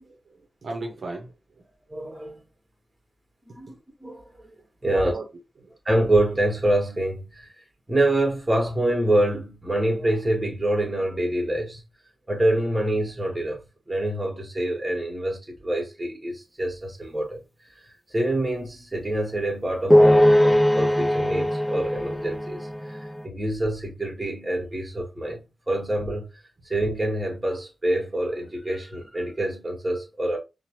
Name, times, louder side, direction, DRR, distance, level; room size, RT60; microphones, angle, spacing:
voice 1, 0.0-1.6 4.9-5.2 5.6-5.8, right 2 dB, 75° right, 0.6 m, -36 dB
voice 2, 1.9-2.4 3.5-4.3 4.8-5.1 5.8-7.5 7.9-11.8 12.3-13.6 13.9-17.4 18.1-26.3 26.6-30.4, right 1 dB, 25° right, 1.3 m, -26 dB
sound 1, 19.9-23.2, equal, 5° left, 0.4 m, -19 dB
2.8 x 2.1 x 2.9 m
cardioid pair, 65°, 0 cm